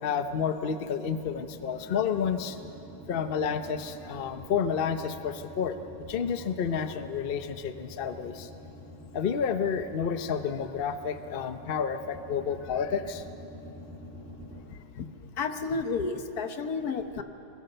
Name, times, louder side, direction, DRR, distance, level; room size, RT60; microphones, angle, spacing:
voice 1, 0.0-2.6 3.1-5.8 6.1-8.5 9.1-13.2, left 7 dB, 75° left, 9 dB, 0.5 m, -30 dB
sound 1, 0.7-14.6, left 1 dB, 5° right, 6.3 m, -46 dB
voice 2, 15.0-17.2, left 4 dB, 55° left, 8 dB, 1.4 m, -32 dB
23.5 x 20.5 x 6.8 m, 2.9 s
omnidirectional pair, 2.2 m